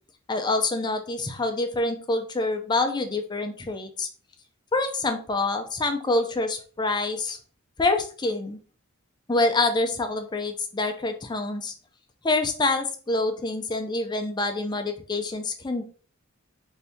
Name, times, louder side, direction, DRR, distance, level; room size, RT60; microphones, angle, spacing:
voice 1, 0.3-4.1 4.7-7.4 7.8-8.6 9.3-11.7 12.2-15.8, left 2 dB, 20° left, 6 dB, 0.4 m, -26 dB
4.0 x 2.7 x 3.4 m, 0.41 s
head